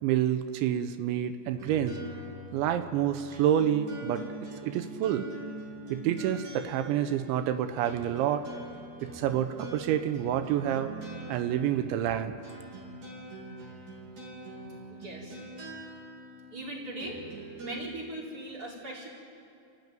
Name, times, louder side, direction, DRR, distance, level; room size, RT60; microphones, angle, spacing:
voice 1, 0.0-2.0 2.5-4.2 4.6-5.3 5.9-8.5 9.0-10.9 11.3-12.4, right 10 dB, 90° right, 9 dB, 3.3 m, -28 dB
sound 1, 1.6-17.9, right 1 dB, 45° right, 4.8 m, -43 dB
voice 2, 14.9-15.4 16.5-17.2 17.6-19.1, right 1 dB, 20° right, -3 dB, 4.5 m, -39 dB
30.0 x 15.5 x 9.3 m, 2.5 s
omnidirectional pair, 5.1 m